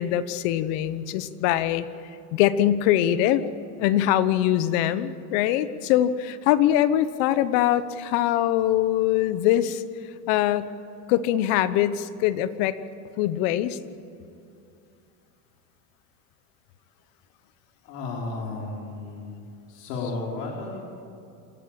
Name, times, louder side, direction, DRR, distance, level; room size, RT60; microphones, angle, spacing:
voice 1, 0.0-1.9 2.3-3.4 3.8-9.8 10.3-10.7 11.1-12.8 13.2-13.8, left 12 dB, 50° left, 14 dB, 1.2 m, -23 dB
voice 2, 17.8-19.4 19.7-20.8, left 3 dB, 85° left, -3 dB, 4.6 m, -33 dB
28.0 x 13.5 x 9.0 m, 2.6 s
supercardioid pair, 160°, 46 cm